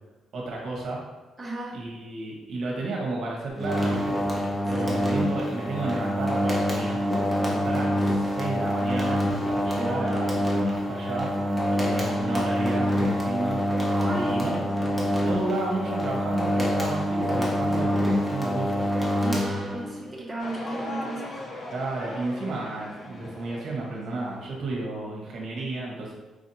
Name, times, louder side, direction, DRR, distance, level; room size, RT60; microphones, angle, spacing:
voice 1, 0.3-1.0 1.7-4.2 4.7-7.0 7.4-10.4 10.6-11.3 11.7-13.6 14.2-14.6 15.2-18.9 21.7-26.1, right 2 dB, 65° right, -3 dB, 0.9 m, -32 dB
voice 2, 1.4-1.8 4.7-5.0 9.7-10.1 13.9-15.0 19.2-21.4, right 2 dB, 15° right, -5 dB, 1.0 m, -35 dB
sound 1, 3.6-20.0, equal, 10° left, 0.8 m, -26 dB
sound 2, 20.4-24.4, left 1 dB, 40° left, 0.6 m, -39 dB
4.7 x 2.6 x 2.6 m, 1.2 s
cardioid pair, 90°, 0 cm